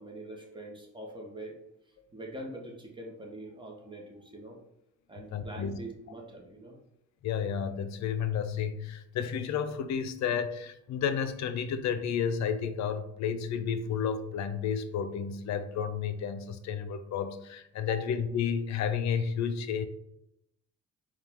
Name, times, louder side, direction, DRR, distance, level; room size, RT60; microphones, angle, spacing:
voice 1, 0.0-1.6 1.9-4.6 5.1-6.8 17.8-18.0, right 1 dB, 15° right, 0 dB, 1.0 m, -44 dB
voice 2, 5.3-5.8 7.2-19.9, left 7 dB, 65° left, 10 dB, 0.5 m, -31 dB
4.3 x 2.4 x 3.5 m, 0.80 s
cardioid pair, 90°, 30 cm